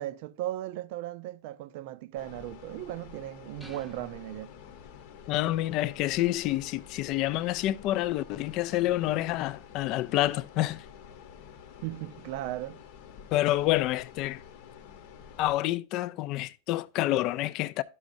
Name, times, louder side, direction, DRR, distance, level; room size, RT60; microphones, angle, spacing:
voice 1, 0.0-4.5 11.8-12.8, right 14 dB, 50° right, 0.4 m, -37 dB
sound 1, 2.2-15.5, left 8 dB, 55° left, 0.9 m, -49 dB
sound 2, 3.6-5.2, left 1 dB, ahead, 0.7 m, -53 dB
voice 2, 5.3-10.8 13.3-14.4 15.4-17.8, left 15 dB, 40° left, 0.3 m, -28 dB
11.5 x 6.2 x 2.6 m
supercardioid pair, 155°, 0 cm